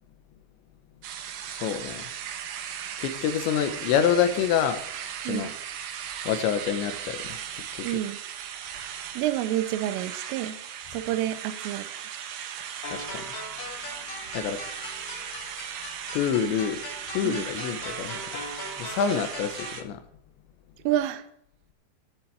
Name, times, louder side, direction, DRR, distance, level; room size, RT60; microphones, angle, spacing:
sound 1, 1.0-19.8, right 9 dB, 75° right, 2.2 m, -37 dB
voice 1, 1.5-2.1 3.0-4.8 5.3-5.5 6.3-7.4 7.7-7.9 12.9-13.2 14.3-14.6 16.1-16.8 17.1-18.2 18.8-20.0, left 8 dB, 75° left, 3.0 m, -27 dB
voice 2, 5.2-5.5 7.8-8.2 9.1-10.6 10.9-12.2 17.2-17.5 20.8-21.3, right 13 dB, 90° right, 3.4 m, -29 dB
sound 2, 12.8-19.8, left 2 dB, 60° left, 5.1 m, -40 dB
10.5 x 7.8 x 8.5 m
omnidirectional pair, 5.7 m